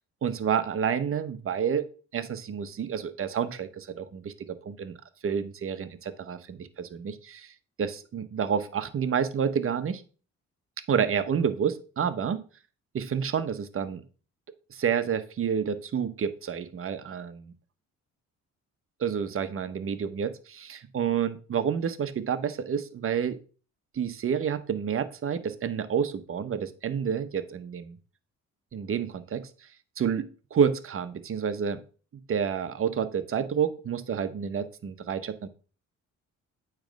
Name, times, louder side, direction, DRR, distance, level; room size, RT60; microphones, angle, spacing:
voice 1, 0.2-1.8 2.1-4.3 4.6-5.0 5.2-7.5 7.8-10.0 10.9-12.4 12.9-14.0 14.7-17.5 19.0-23.4 23.9-28.0 28.7-29.5 30.0-31.8 32.3-35.5, right 7 dB, 45° right, 11 dB, 0.9 m, -29 dB
8.8 x 3.3 x 5.2 m, 0.37 s
cardioid pair, 90°, 30 cm